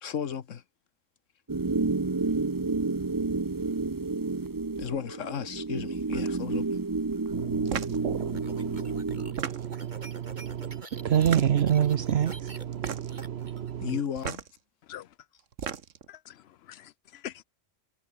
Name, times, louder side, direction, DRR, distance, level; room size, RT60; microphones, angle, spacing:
voice 1, 0.0-0.6 4.8-6.8 13.8-14.4, left 8 dB, 80° left, 1.5 m, -34 dB
sound 1, 1.5-9.3, right 3 dB, 20° right, 0.7 m, -30 dB
voice 2, 7.3-13.9, right 9 dB, 60° right, 0.9 m, -29 dB
sound 2, 7.7-8.0 9.2-9.9 11.1-11.7 12.7-13.2 14.2-14.5 15.4-16.1, right 7 dB, 85° right, 1.6 m, -35 dB
sound 3, 7.8-14.4, right 2 dB, 35° right, 2.7 m, -47 dB
voice 3, 16.1-17.4, left 11 dB, 65° left, 0.8 m, -44 dB
omnidirectional pair, 1.3 m